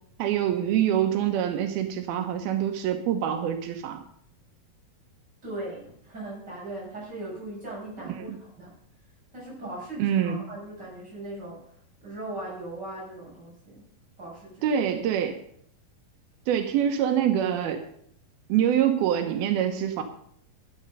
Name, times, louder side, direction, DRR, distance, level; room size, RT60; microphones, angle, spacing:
voice 1, 0.2-4.0 8.2-8.4 10.0-10.4 14.6-15.4 16.5-17.8 18.5-20.0, right 10 dB, 90° right, 6 dB, 3.0 m, -25 dB
voice 2, 5.4-8.7 9.3-11.7 12.0-13.8 14.2-14.7, right 1 dB, 25° right, -5 dB, 7.7 m, -39 dB
12.5 x 9.9 x 5.5 m, 0.65 s
omnidirectional pair, 4.2 m